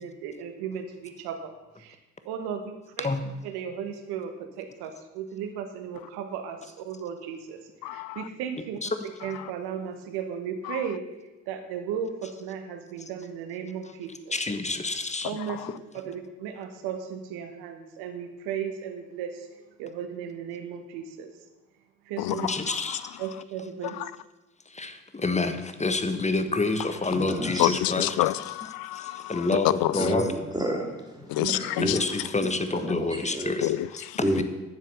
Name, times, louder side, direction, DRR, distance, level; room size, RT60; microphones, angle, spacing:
voice 1, 0.0-2.0 2.2-3.1 3.4-8.8 9.2-11.0 11.5-14.4 15.2-15.7 16.0-21.3 22.0-22.5 23.2-24.0 25.8-25.9 29.5-29.6 31.3-31.5 31.8-31.9, right 7 dB, 75° right, 1.3 m, -35 dB
voice 2, 7.8-8.2 10.7-10.8 15.5-15.6 22.2-23.0 27.6-30.1 31.3-32.0 33.6-34.2, left 16 dB, 65° left, 0.5 m, -28 dB
voice 3, 14.3-15.3 22.3-23.1 24.7-28.2 28.9-30.2 31.8-33.7 34.4-34.5, left 3 dB, 20° left, 1.3 m, -28 dB
voice 4, 27.1-27.7 29.9-32.0 32.4-33.0 33.3-33.5 34.2-34.4, equal, 10° right, 3.2 m, -30 dB
10.5 x 7.4 x 6.9 m
hypercardioid pair, 45°, 39 cm